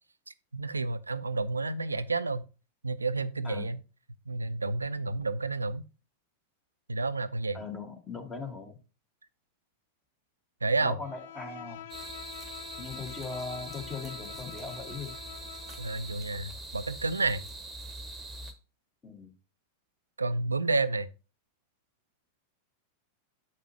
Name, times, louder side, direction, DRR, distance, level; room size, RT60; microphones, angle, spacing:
voice 1, 0.5-2.5 2.8-3.8 4.3-5.8 6.9-7.6 10.6-11.0 15.8-17.4 20.2-21.1, right 3 dB, 80° right, 0.4 m, -30 dB
voice 2, 7.5-8.8 10.8-11.9 12.8-15.2 19.0-19.3, left 4 dB, 20° left, 1.4 m, -39 dB
Bowed string instrument, 11.0-16.2, left 12 dB, 55° left, 0.4 m, -46 dB
sound 1, 11.9-18.5, right 2 dB, 15° right, 1.0 m, -43 dB
7.3 x 5.3 x 2.8 m
figure-of-eight pair, 90°, 0 cm